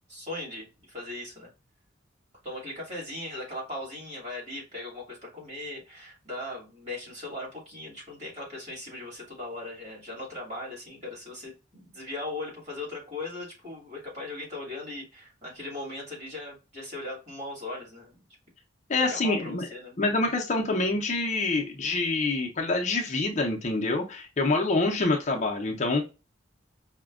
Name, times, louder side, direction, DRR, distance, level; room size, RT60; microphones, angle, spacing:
voice 1, 0.1-1.5 2.4-18.2 19.0-20.0, left 2 dB, 35° right, -4 dB, 2.0 m, -38 dB
voice 2, 18.9-19.7 20.0-26.0, left 2 dB, 35° left, 1 dB, 0.5 m, -26 dB
4.9 x 2.1 x 2.3 m, 0.29 s
head